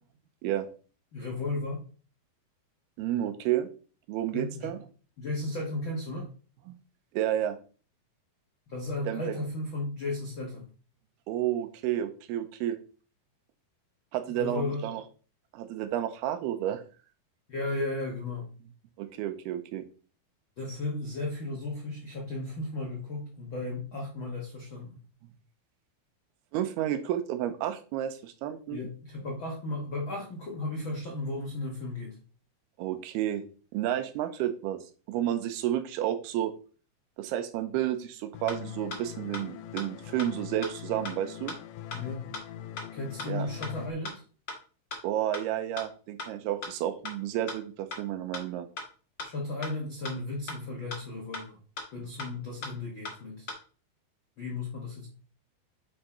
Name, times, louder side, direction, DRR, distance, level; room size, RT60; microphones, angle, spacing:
voice 1, 1.1-1.8 4.3-4.7 5.2-6.3 8.7-10.7 14.3-14.9 17.5-18.5 20.6-25.0 28.7-32.2 41.9-42.3 42.9-44.2 49.2-51.6 51.9-53.5 54.4-55.1, left 2 dB, 65° left, -2 dB, 1.2 m, -35 dB
voice 2, 3.0-3.7 4.1-4.8 6.7-6.8 7.1-7.6 9.1-9.4 11.3-12.8 14.1-15.0 15.5-16.8 19.0-19.8 26.5-28.9 32.8-33.4 33.7-36.5 37.2-41.5 43.3-43.5 45.0-48.7, right 12 dB, 90° right, 9 dB, 2.8 m, -31 dB
sound 1, 38.3-43.9, left 11 dB, 85° left, 1.8 m, -42 dB
sound 2, 38.5-38.6 38.9-39.0 39.3-39.4 39.8-39.9 40.2-40.3 40.6-40.7 41.0-41.1 41.5-41.6 41.9-42.0 42.3-42.4 42.8-42.9 43.2-43.3 43.6-43.7 44.0-44.1 44.5-44.6 44.9-45.0 45.3-45.4 45.8-45.9 46.2-46.3 46.6-46.7 47.0-47.1 47.5-47.6 47.9-48.0 48.3-48.4 48.8-48.9 49.2-49.3 49.6-49.7 50.0-50.1 50.5-50.6 50.9-51.0 51.3-51.4 51.8-51.9 52.2-52.3 52.6-52.7 53.0-53.1 53.5-53.6, left 3 dB, 45° left, 1.4 m, -37 dB
9.3 x 3.8 x 4.3 m, 0.38 s
omnidirectional pair, 4.5 m